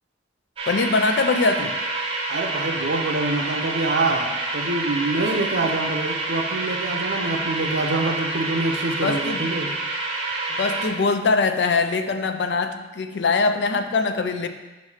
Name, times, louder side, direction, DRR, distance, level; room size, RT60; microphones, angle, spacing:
sound 1, 0.6-10.9, right 2 dB, 30° right, 1.1 m, -28 dB
voice 1, 0.7-1.8 9.0-9.5 10.6-14.5, left 4 dB, 70° left, 8 dB, 0.4 m, -22 dB
voice 2, 2.3-9.7, right 2 dB, 75° right, 4 dB, 0.7 m, -25 dB
5.8 x 3.2 x 5.6 m, 1.2 s
head